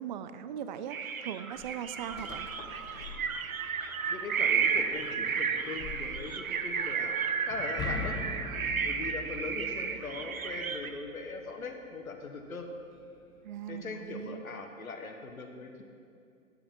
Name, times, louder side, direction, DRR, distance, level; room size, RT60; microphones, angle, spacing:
voice 1, 0.0-2.5 13.4-14.4, right 9 dB, 35° right, 12 dB, 0.4 m, -39 dB
sound 1, 0.9-10.9, right 6 dB, 80° right, 0.7 m, -33 dB
sound 2, 1.5-7.9, left 4 dB, 40° left, 1.5 m, -49 dB
voice 2, 4.1-8.2 8.8-12.7 13.7-15.8, left 3 dB, 85° left, 4 dB, 1.1 m, -40 dB
sound 3, 7.5-11.5, left 4 dB, 10° left, 0.6 m, -41 dB
11.0 x 7.0 x 5.2 m, 2.4 s
figure-of-eight pair, 115°, 41 cm